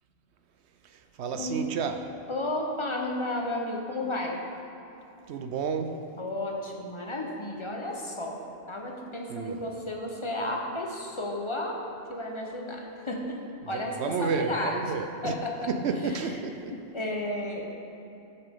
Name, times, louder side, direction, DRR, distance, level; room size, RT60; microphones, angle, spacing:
voice 1, 0.9-2.1 5.3-6.0 9.3-9.6 13.7-15.3 15.7-16.7, right 5 dB, 65° right, 7 dB, 0.8 m, -31 dB
voice 2, 2.3-4.4 6.2-8.4 8.7-11.8 12.1-14.9 15.2-15.5 16.0-16.4 16.7-17.6, left 1 dB, 25° left, 0 dB, 0.9 m, -33 dB
13.0 x 6.7 x 3.7 m, 2.9 s
omnidirectional pair, 1.3 m